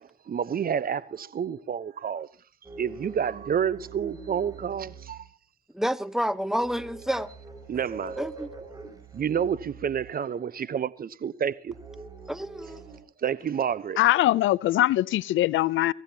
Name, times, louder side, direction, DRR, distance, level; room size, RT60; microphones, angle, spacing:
voice 1, 0.0-2.3 2.8-5.3 7.7-8.2 9.1-11.7 13.2-14.0, right 8 dB, 45° right, 1.0 m, -29 dB
sound 1, 2.6-5.3 6.4-10.1 11.7-13.0, right 4 dB, 20° right, 7.0 m, -44 dB
voice 2, 5.7-7.3 8.2-8.5 12.3-12.8, equal, ahead, 1.1 m, -29 dB
voice 3, 14.0-15.9, left 15 dB, 80° left, 0.6 m, -22 dB
23.0 x 16.5 x 3.0 m
cardioid pair, 90°, 20 cm